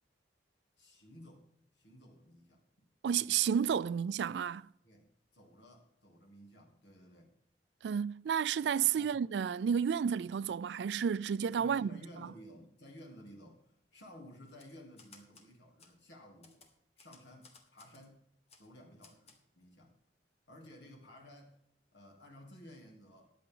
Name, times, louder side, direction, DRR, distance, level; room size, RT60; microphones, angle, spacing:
voice 1, 0.8-1.5 1.7-2.6 3.8-4.0 4.8-7.4 8.9-9.2 11.6-16.6 17.0-18.2 18.6-19.9 20.5-21.6 21.9-23.3, equal, 75° left, 3.1 m, -55 dB
voice 2, 3.0-4.7 7.8-11.9, right 7 dB, 65° right, 0.3 m, -31 dB
Typewriter, 14.5-15.5 15.8-15.9 16.4-18.1 18.5-18.7 19.0-19.4, left 4 dB, 35° left, 1.7 m, -60 dB
14.0 x 10.0 x 3.8 m
head